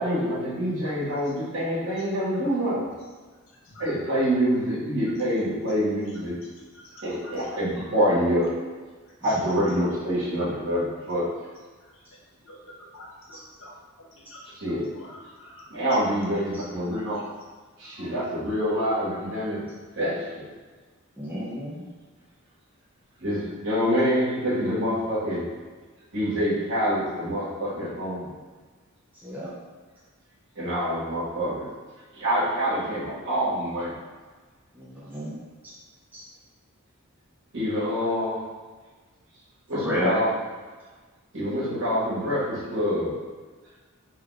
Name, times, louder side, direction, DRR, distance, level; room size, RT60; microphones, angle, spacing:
voice 1, 0.0-2.8 3.8-6.3 7.0-8.5 9.2-11.3 14.6-14.9 15.7-17.2 17.8-19.6 20.0-20.4 23.2-25.4 26.1-28.3 30.6-31.7 32.1-34.0 37.5-38.4 39.7-40.3 41.3-43.1, equal, 65° right, -9 dB, 1.3 m, -26 dB
voice 2, 6.7-7.5 7.8-7.9 9.2-9.3 12.4-13.7 14.2-14.4 15.0-15.6 17.8-18.1, left 1 dB, 65° left, -3 dB, 0.7 m, -47 dB
voice 3, 9.4-9.8 13.3-13.4 16.5-16.6 21.2-21.8 29.2-29.5 34.7-35.3 36.1-36.2 39.7-40.2, equal, 10° right, -7 dB, 0.4 m, -31 dB
3.2 x 2.3 x 3.2 m, 1.4 s
head